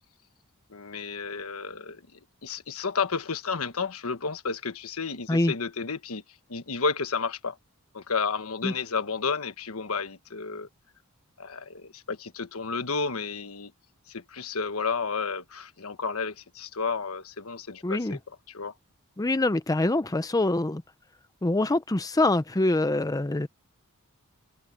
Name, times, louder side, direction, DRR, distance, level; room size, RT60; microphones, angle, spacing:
voice 1, 0.7-6.2 6.5-7.6 7.9-10.7 11.4-13.7 14.1-18.2 18.5-18.7, left 5 dB, 70° left, 1.3 m, -32 dB
voice 2, 17.8-18.2 19.2-20.8 21.4-23.5, left 2 dB, 15° left, 0.6 m, -25 dB
open air
head